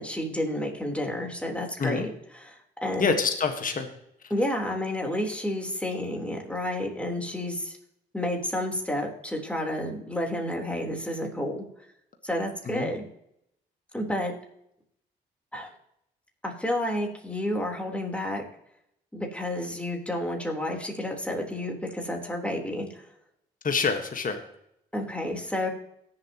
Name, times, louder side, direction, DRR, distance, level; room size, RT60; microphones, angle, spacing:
voice 1, 0.0-3.2 4.3-7.7 8.1-11.7 12.2-13.0 13.9-14.3 15.5-15.7 16.4-18.4 19.1-23.0 24.9-25.7, left 1 dB, 5° left, 1 dB, 3.8 m, -30 dB
voice 2, 3.0-3.9 12.7-12.9 23.6-24.4, left 5 dB, 45° left, 6 dB, 1.5 m, -26 dB
18.0 x 7.6 x 3.0 m, 0.75 s
supercardioid pair, 50°, 19 cm